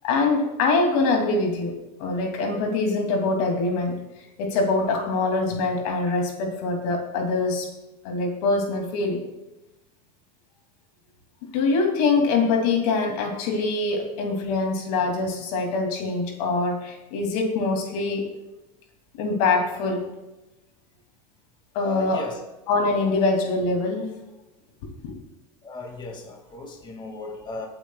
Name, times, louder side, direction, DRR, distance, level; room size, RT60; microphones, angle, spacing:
voice 1, 0.0-1.7 2.0-7.7 8.0-9.2 11.5-18.3 19.2-20.1 21.7-22.2 22.7-24.1 25.0-25.1, left 3 dB, 65° left, 2 dB, 2.7 m, -24 dB
voice 2, 21.8-22.4 25.6-27.7, left 2 dB, 20° left, 1 dB, 2.1 m, -36 dB
22.0 x 8.8 x 2.4 m, 0.99 s
supercardioid pair, 125°, 21 cm